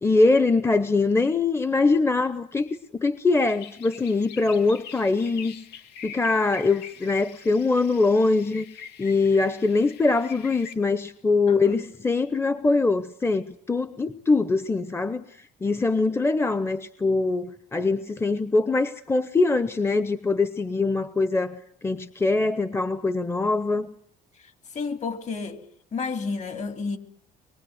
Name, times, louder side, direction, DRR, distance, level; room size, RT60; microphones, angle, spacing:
voice 1, 0.0-2.7 2.9-5.5 6.0-15.2 15.6-23.9, left 3 dB, 15° left, 1.0 m, -23 dB
sound 1, 3.4-10.7, left 8 dB, 90° left, 2.4 m, -44 dB
voice 2, 11.5-11.8 24.7-25.6 25.9-27.0, left 4 dB, 45° left, 3.1 m, -31 dB
24.5 x 22.0 x 8.0 m
cardioid pair, 110°, 17 cm